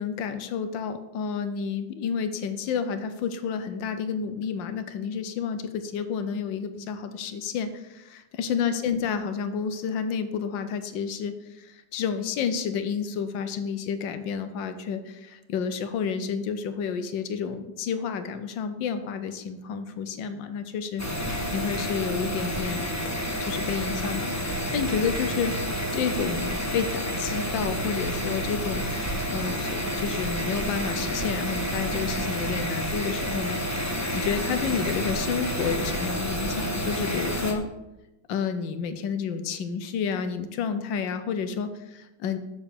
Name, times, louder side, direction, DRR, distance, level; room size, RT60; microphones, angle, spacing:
voice 1, 0.0-22.9 23.4-33.6 34.1-37.6 38.3-42.4, left 6 dB, 85° left, 9 dB, 1.6 m, -30 dB
sound 1, 21.0-37.5, equal, 10° left, 0.8 m, -29 dB
7.3 x 7.2 x 6.7 m, 0.98 s
omnidirectional pair, 2.0 m